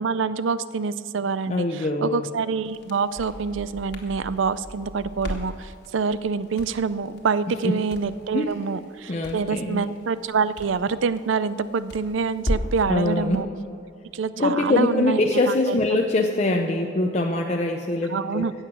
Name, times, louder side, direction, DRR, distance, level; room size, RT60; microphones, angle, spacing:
voice 1, 0.0-13.5 14.1-15.2 15.5-15.8 18.1-18.5, right 5 dB, 70° right, 15 dB, 0.4 m, -26 dB
voice 2, 1.5-2.3 7.6-7.8 8.3-8.5 9.1-9.8 12.9-13.4 14.4-18.4, left 2 dB, 35° left, 2 dB, 0.6 m, -23 dB
Crackle, 2.7-12.9, equal, 55° left, 1.6 m, -36 dB
15.0 x 8.1 x 6.1 m, 2.5 s
head